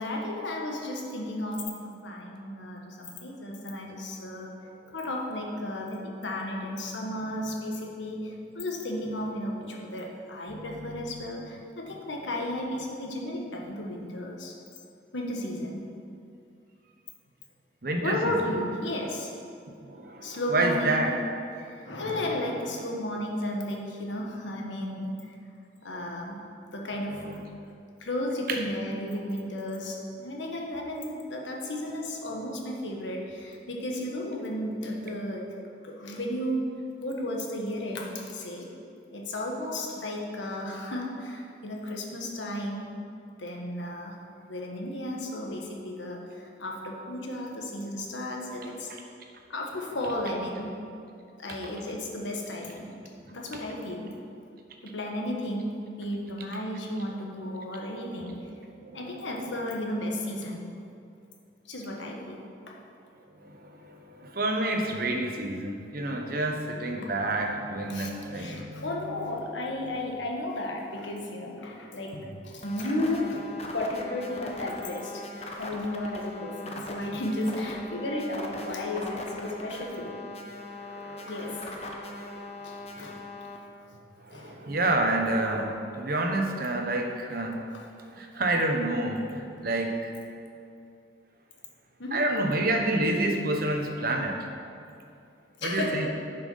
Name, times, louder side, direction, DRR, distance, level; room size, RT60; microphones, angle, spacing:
voice 1, 0.0-4.5 4.9-14.5 15.1-15.9 18.0-19.3 20.2-21.1 21.6-25.1 25.8-26.5 26.7-27.2 28.0-36.7 37.0-38.7 39.1-42.8 43.4-44.2 44.5-46.2 46.6-48.9 49.5-50.7 51.4-52.9 53.3-54.1 54.8-58.4 58.9-60.7 61.7-62.8 67.9-73.5 73.7-75.3 75.6-80.3 81.2-81.6 82.6-83.2 84.3-84.6 92.0-92.2 95.6-96.1, left 1 dB, 85° left, -1 dB, 1.4 m, -33 dB
voice 2, 10.5-11.2 17.8-18.5 19.9-21.1 27.1-27.4 28.5-28.6 51.5-51.6 53.3-53.4 57.5-57.8 58.8-59.2 63.4-69.3 80.8-82.6 84.2-87.6 88.1-90.1 92.1-94.4 95.6-96.1, right 2 dB, 50° right, 3 dB, 1.0 m, -29 dB
sound 1, 72.6-83.6, left 2 dB, 35° left, 0.8 m, -40 dB
10.5 x 5.7 x 5.5 m, 2.5 s
head